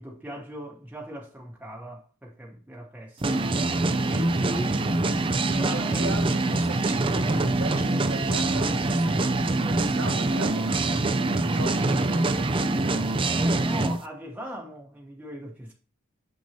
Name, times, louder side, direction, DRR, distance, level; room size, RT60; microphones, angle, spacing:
voice 1, 0.0-3.5 4.1-4.8 5.4-6.2 13.3-15.7, equal, 5° right, 1.0 m, -38 dB
sound 1, 3.2-14.0, right 2 dB, 25° right, 0.5 m, -24 dB
voice 2, 5.5-9.4 9.8-12.9, right 2 dB, 70° right, 1.5 m, -39 dB
7.0 x 5.9 x 2.7 m
head